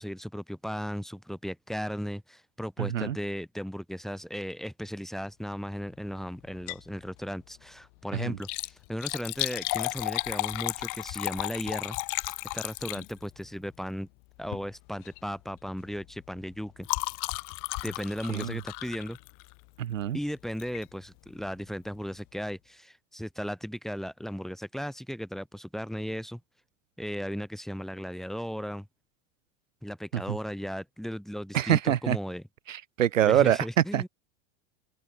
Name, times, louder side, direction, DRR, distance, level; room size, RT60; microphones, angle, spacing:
voice 1, 0.0-12.0 12.5-14.1 14.4-16.9 17.8-19.2 20.1-26.4 27.0-28.9 29.8-32.4 33.2-34.1, equal, ahead, 6.9 m, -36 dB
voice 2, 2.8-3.2 8.1-8.4 18.3-18.6 19.8-20.2 30.1-30.2 31.5-32.2 32.7-33.6 33.9-34.1, right 10 dB, 85° right, 5.6 m, -25 dB
Liquid, 6.5-6.9 7.3-7.4 8.3-13.4 14.4-14.7 15.0-15.3 15.6-19.7 20.6-20.9 21.4-21.5 21.7-21.8, left 33 dB, 60° left, 3.3 m, -34 dB
open air
hypercardioid pair, 95°, 37 cm